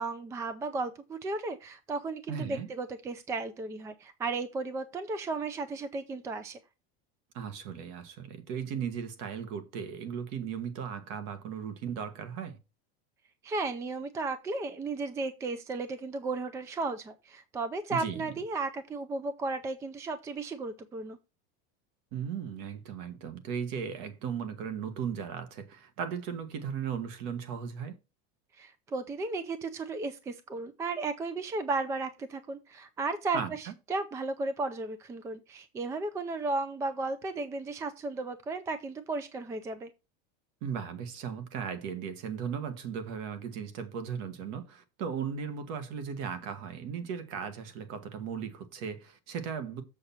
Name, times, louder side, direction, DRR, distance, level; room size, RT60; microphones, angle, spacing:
voice 1, 0.0-6.6 13.4-21.2 28.6-39.9, right 3 dB, 10° right, 0.4 m, -34 dB
voice 2, 2.3-2.7 7.3-12.6 17.9-18.3 22.1-28.0 33.3-33.7 40.6-49.8, right 7 dB, 50° right, 1.6 m, -37 dB
7.1 x 6.4 x 4.3 m
supercardioid pair, 170°, 30 cm